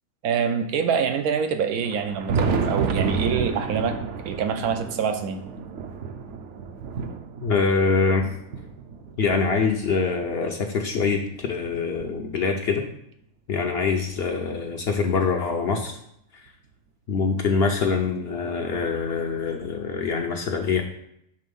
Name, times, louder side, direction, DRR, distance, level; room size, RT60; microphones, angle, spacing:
voice 1, 0.2-4.0 4.3-5.4, right 6 dB, 85° right, 7 dB, 1.1 m, -25 dB
Thunder, 1.8-10.3 11.0-12.7 13.8-13.9 14.5-14.6 16.5-16.6 17.9-18.0 19.6-19.7, right 5 dB, 65° right, 0.8 m, -31 dB
voice 2, 7.4-8.3 9.2-12.8 13.5-16.0 17.1-20.8, left 5 dB, 60° left, 3 dB, 0.7 m, -24 dB
5.5 x 3.4 x 5.3 m, 0.75 s
omnidirectional pair, 1.5 m